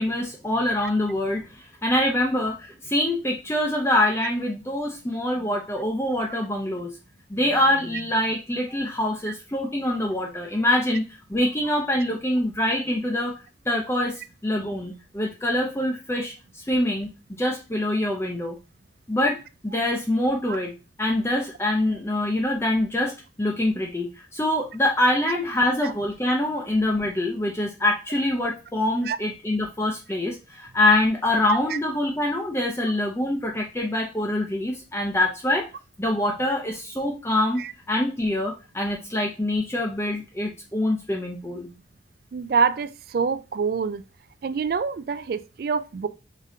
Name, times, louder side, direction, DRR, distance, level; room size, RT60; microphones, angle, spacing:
voice 1, 0.0-6.9 7.3-13.3 13.7-18.6 19.1-20.7 21.0-23.1 23.4-35.7 36.0-41.7, left 1 dB, 15° left, 0.5 m, -25 dB
voice 2, 42.3-44.0 44.4-46.1, right 5 dB, 55° right, 0.3 m, -25 dB
5.0 x 3.7 x 2.7 m
head